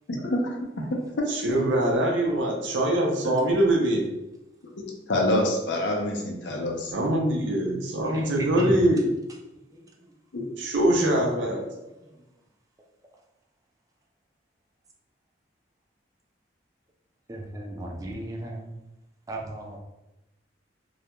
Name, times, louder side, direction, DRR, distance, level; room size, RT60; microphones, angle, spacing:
voice 1, 0.1-1.3 3.2-3.3 4.8-6.9 10.3-10.5, left 1 dB, 75° left, 0 dB, 0.5 m, -27 dB
voice 2, 1.3-4.2 6.9-9.1 10.6-11.7, right 1 dB, 80° right, -1 dB, 0.5 m, -23 dB
voice 3, 8.0-8.8 9.7-9.8 17.3-18.7 19.3-19.8, right 1 dB, 20° right, 0 dB, 0.3 m, -35 dB
2.3 x 2.1 x 2.9 m, 0.94 s
head